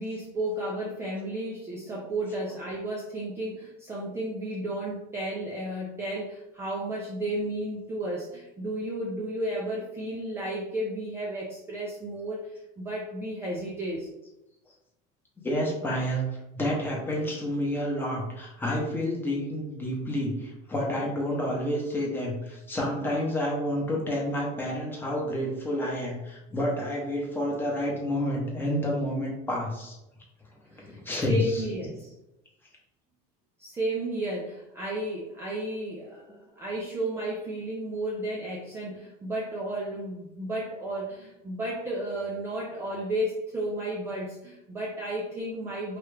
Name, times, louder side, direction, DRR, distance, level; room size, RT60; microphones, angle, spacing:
voice 1, 0.0-14.1 30.7-31.0 31.3-32.1 33.6-36.2 36.6-46.0, right 1 dB, 15° right, -3 dB, 0.3 m, -33 dB
voice 2, 15.4-16.2 16.5-30.0 30.7-31.6, equal, 10° left, -2 dB, 0.7 m, -29 dB
3.1 x 2.3 x 3.2 m, 0.92 s
cardioid pair, 160°, 19 cm